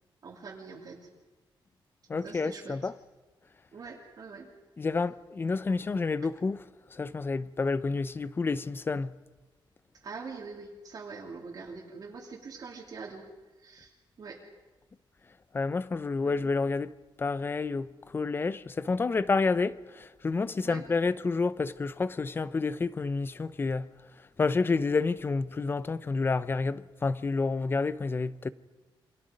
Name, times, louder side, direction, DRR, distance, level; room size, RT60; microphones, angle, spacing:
voice 1, 0.2-1.0 2.1-2.7 3.7-4.5 5.6-5.9 10.0-13.2 13.6-13.9 14.2-14.4 16.2-16.3 20.6-20.8, right 4 dB, 45° right, 3.0 m, -43 dB
voice 2, 2.1-2.9 4.8-6.6 6.9-9.1 15.5-23.9 24.4-28.5, left 4 dB, 25° left, 0.7 m, -29 dB
29.5 x 25.0 x 5.2 m
wide cardioid pair, 170°, 9 cm